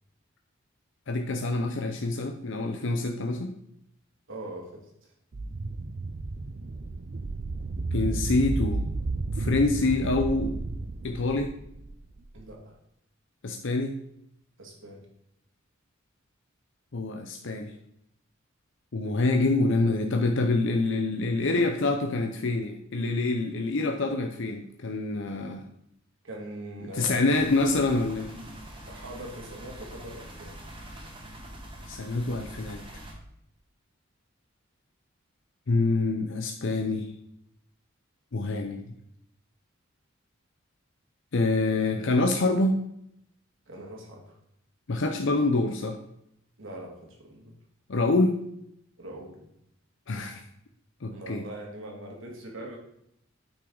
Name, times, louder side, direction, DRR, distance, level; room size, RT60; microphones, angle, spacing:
voice 1, 1.1-3.5 7.9-8.8 9.3-10.5 11.0-11.5 13.4-14.0 16.9-17.7 18.9-25.7 27.0-28.3 31.9-32.8 35.7-37.1 38.3-38.9 41.3-42.7 44.9-46.0 47.9-48.4 50.1-50.4 51.0-51.4, left 2 dB, 65° left, 4 dB, 0.7 m, -26 dB
voice 2, 4.3-5.1 12.3-12.7 14.6-15.1 26.2-27.4 28.3-28.6 28.9-30.6 43.7-44.4 46.6-47.6 49.0-49.5 51.1-52.8, right 1 dB, 65° right, -1 dB, 2.5 m, -42 dB
sound 1, 5.3-12.4, right 2 dB, 45° right, 0.5 m, -32 dB
sound 2, 27.3-33.1, right 1 dB, 25° right, 1.8 m, -44 dB
9.2 x 6.0 x 3.9 m, 0.77 s
head